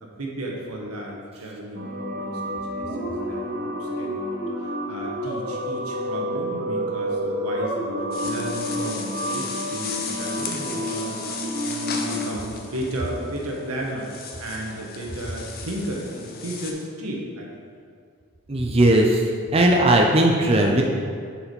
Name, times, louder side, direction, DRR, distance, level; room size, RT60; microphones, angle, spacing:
voice 1, 0.0-17.5, right 1 dB, 85° right, -2 dB, 1.4 m, -34 dB
sound 1, 1.7-12.4, equal, 40° right, 1.1 m, -29 dB
sound 2, 8.1-16.7, left 5 dB, 40° left, 0.7 m, -36 dB
voice 2, 18.5-19.2 19.5-20.8, right 1 dB, 25° right, 1 dB, 0.5 m, -17 dB
7.0 x 4.8 x 5.3 m, 2.2 s
head